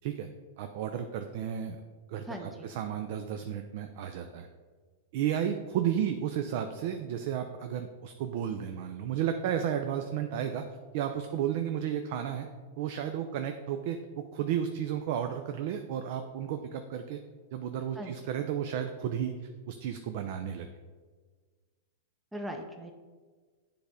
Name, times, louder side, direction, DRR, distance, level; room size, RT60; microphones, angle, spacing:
voice 1, 0.6-1.8 2.1-4.5 5.1-10.6 10.9-12.5 12.8-17.2 17.5-19.3 19.7-20.7, right 9 dB, 60° right, 7 dB, 0.4 m, -33 dB
voice 2, 2.2-2.7 18.0-18.2 22.3-22.9, equal, 5° right, 3 dB, 0.6 m, -39 dB
7.9 x 3.4 x 5.0 m, 1.5 s
hypercardioid pair, 120°, 0 cm